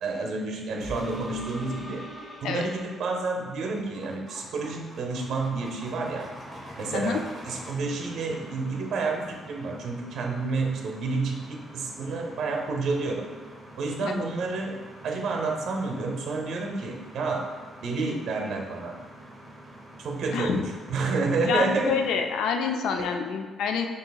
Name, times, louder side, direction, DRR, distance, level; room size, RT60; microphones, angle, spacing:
voice 1, 0.0-2.0 2.4-6.3 6.8-13.3 13.8-17.5 17.8-18.9 20.0-20.6 20.9-22.0 22.9-23.1, right 3 dB, 70° right, 1 dB, 0.7 m, -29 dB
sound 1, 0.8-3.7 4.3-4.4, equal, 25° left, 0.9 m, -42 dB
sound 2, 3.4-22.5, equal, 15° right, 0.8 m, -46 dB
voice 2, 20.3-20.6 21.5-23.9, left 6 dB, 85° left, 4 dB, 0.3 m, -27 dB
6.5 x 2.8 x 2.3 m, 1.4 s
cardioid pair, 90°, 0 cm